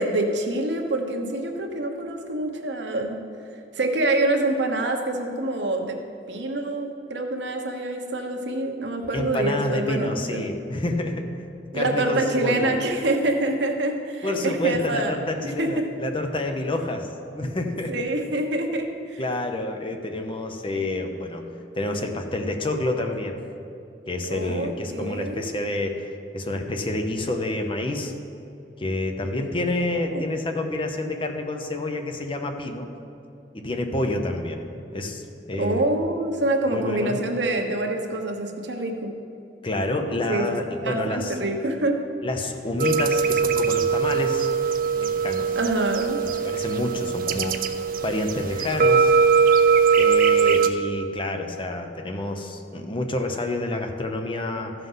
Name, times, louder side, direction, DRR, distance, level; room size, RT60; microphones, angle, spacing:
voice 1, 0.0-3.2 3.7-6.0 6.3-10.4 11.7-15.2 15.6-15.7 17.9-19.2 24.3-25.5 30.0-30.2 35.6-39.1 40.3-40.6 40.8-42.0 45.5-46.2, right 2 dB, 80° right, 3 dB, 1.1 m, -26 dB
voice 2, 9.1-11.3 11.7-12.7 14.2-17.1 17.3-17.9 19.2-21.5 21.7-23.4 24.1-28.1 28.8-32.9 33.5-35.9 36.7-37.2 39.6-41.3 42.2-44.5 45.0-45.6 46.2-47.6 48.0-49.1 50.0-54.7, left 1 dB, 30° left, 5 dB, 0.8 m, -28 dB
sound 1, 42.8-50.7, right 6 dB, 50° right, 0.5 m, -21 dB
14.0 x 5.7 x 5.6 m, 2.7 s
head